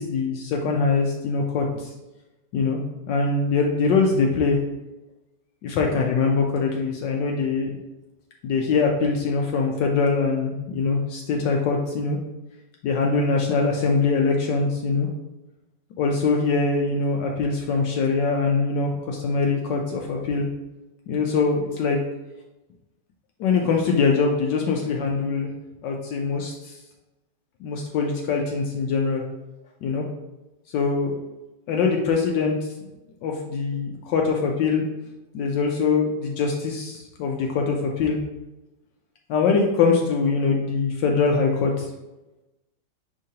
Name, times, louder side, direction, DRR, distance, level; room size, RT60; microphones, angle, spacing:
voice 1, 0.0-1.9 2.5-2.8 3.1-4.6 5.6-7.7 8.4-12.2 12.8-15.1 16.0-20.5 21.1-22.0 23.4-25.5 25.8-26.7 27.6-29.2 29.8-30.0 30.7-31.2 31.7-32.6 33.2-34.8 35.3-38.2 39.3-41.9, left 4 dB, 75° left, 0 dB, 1.2 m, -23 dB
5.1 x 3.7 x 2.8 m, 0.99 s
omnidirectional pair, 2.0 m